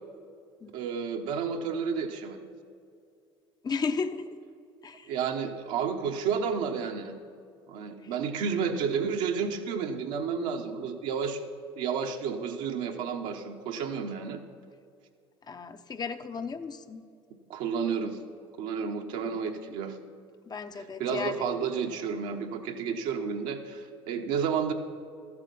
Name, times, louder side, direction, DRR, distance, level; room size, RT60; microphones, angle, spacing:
voice 1, 0.7-2.4 5.1-7.2 7.7-11.4 11.8-14.4 17.5-18.2 18.6-20.0 21.0-24.7, right 6 dB, 70° right, 4 dB, 1.0 m, -31 dB
voice 2, 3.6-4.4 4.8-5.1 8.0-8.1 15.5-17.0 19.2-19.4 20.5-21.5, left 5 dB, 30° left, 9 dB, 0.7 m, -34 dB
13.5 x 8.0 x 5.4 m, 2.4 s
hypercardioid pair, 65°, 14 cm